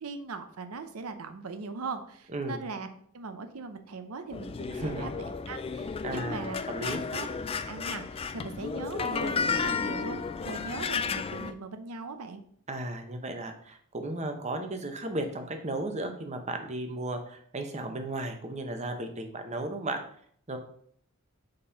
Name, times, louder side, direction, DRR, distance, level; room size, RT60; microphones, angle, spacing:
voice 1, 0.0-2.9 3.1-6.6 7.1-7.3 7.7-12.4, right 4 dB, 80° right, 8 dB, 0.6 m, -40 dB
sound 1, 4.3-11.5, left 5 dB, 25° left, 0.3 m, -33 dB
voice 2, 4.7-5.1 6.0-7.0 12.7-20.0 20.5-20.6, right 2 dB, 30° right, 5 dB, 0.8 m, -35 dB
5.4 x 4.2 x 5.6 m, 0.62 s
head